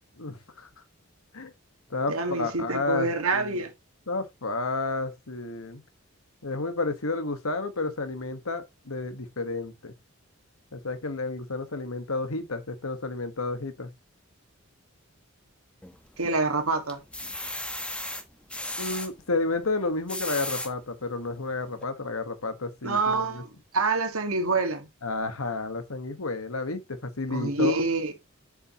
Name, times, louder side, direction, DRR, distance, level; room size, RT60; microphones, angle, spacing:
voice 1, 0.2-0.7 1.3-1.5 1.9-3.6 4.1-5.8 6.4-9.9 10.7-13.9 18.8-23.4 25.0-27.8, left 3 dB, 80° left, 1.6 m, -31 dB
voice 2, 2.1-3.7 16.2-17.0 22.8-23.5 23.7-24.9 27.3-28.1, right 3 dB, 80° right, 1.9 m, -26 dB
sound 1, 15.8-16.4 16.9-19.1 19.9-20.7 21.3-21.4 21.7-21.8, left 1 dB, 5° left, 1.3 m, -35 dB
7.9 x 7.5 x 3.0 m
head